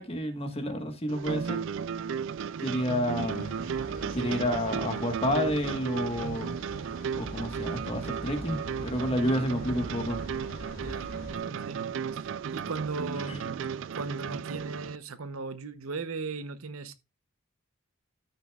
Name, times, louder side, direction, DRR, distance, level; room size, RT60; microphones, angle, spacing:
voice 1, 0.0-1.6 2.6-3.6 4.1-6.6 7.1-10.2 13.3-13.4, equal, 30° left, 1.4 m, -30 dB
sound 1, 1.1-15.0, right 7 dB, 60° right, 0.4 m, -35 dB
sound 2, 3.1-11.4, equal, 50° left, 2.2 m, -44 dB
voice 2, 10.8-11.1 11.4-11.9 12.1-13.6 13.9-16.9, right 4 dB, 85° right, 0.9 m, -37 dB
13.0 x 6.6 x 2.4 m
head